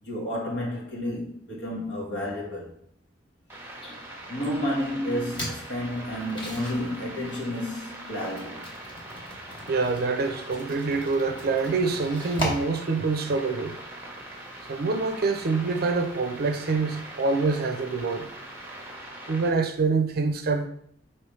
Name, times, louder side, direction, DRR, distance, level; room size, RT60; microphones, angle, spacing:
voice 1, 0.0-2.7 3.8-8.7, left 1 dB, 65° left, 1.4 m, -31 dB
sound 1, 3.5-19.5, right 1 dB, 10° right, 0.9 m, -42 dB
sound 2, 5.3-18.9, equal, 25° left, 1.1 m, -41 dB
voice 2, 9.7-13.8 14.7-18.3 19.3-20.7, right 4 dB, 55° right, 0.5 m, -26 dB
4.8 x 3.0 x 3.1 m
head